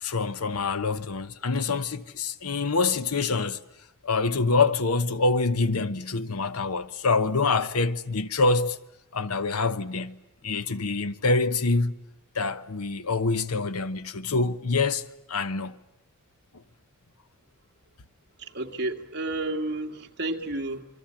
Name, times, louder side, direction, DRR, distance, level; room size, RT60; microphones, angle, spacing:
voice 1, 0.0-3.6 4.0-8.8 9.1-10.2 10.4-11.9 12.3-15.8, left 3 dB, 80° left, 1.1 m, -26 dB
voice 2, 18.4-20.9, right 2 dB, 50° right, 2.0 m, -31 dB
28.0 x 23.5 x 8.9 m
head